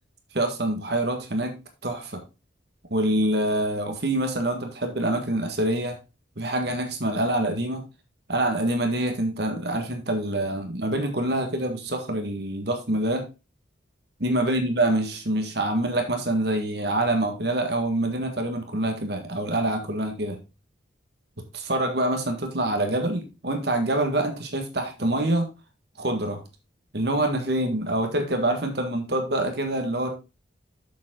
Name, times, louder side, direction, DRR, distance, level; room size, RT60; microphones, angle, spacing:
voice 1, 0.3-1.5 1.8-2.2 2.9-6.0 6.4-7.8 8.3-13.3 14.2-20.4 21.5-25.5 26.0-26.4 26.9-30.1, right 1 dB, 60° right, 5 dB, 1.6 m, -26 dB
7.2 x 7.2 x 3.8 m, 0.29 s
head